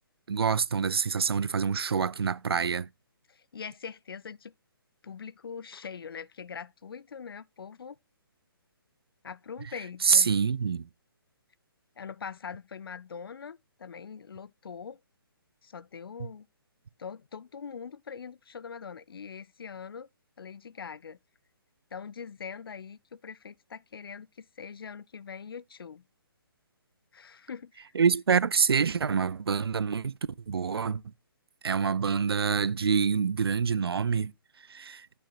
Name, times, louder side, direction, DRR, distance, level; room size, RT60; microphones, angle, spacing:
voice 1, 0.3-2.9 10.0-10.9 27.9-30.1 30.5-31.0 31.6-34.3 34.7-35.1, right 6 dB, 80° right, 0.4 m, -26 dB
voice 2, 3.3-4.5 5.0-8.0 9.2-10.3 12.0-15.0 15.6-16.5 17.0-20.1 20.4-21.2 21.9-26.0 27.1-27.9, left 6 dB, 70° left, 0.4 m, -42 dB
9.3 x 6.6 x 2.2 m
figure-of-eight pair, 140°, 13 cm